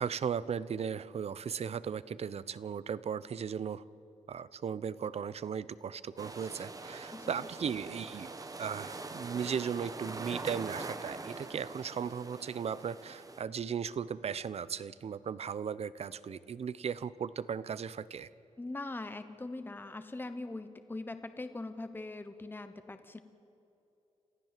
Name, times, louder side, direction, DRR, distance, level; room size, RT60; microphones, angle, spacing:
voice 1, 0.0-3.8 4.3-8.3 8.6-18.3, right 7 dB, 55° right, 17 dB, 0.7 m, -37 dB
sound 1, 6.2-13.4, right 3 dB, 30° right, 1.3 m, -43 dB
voice 2, 18.6-23.2, left 2 dB, 15° left, 9 dB, 1.0 m, -41 dB
28.0 x 15.0 x 7.5 m, 2.9 s
cardioid pair, 100°, 12 cm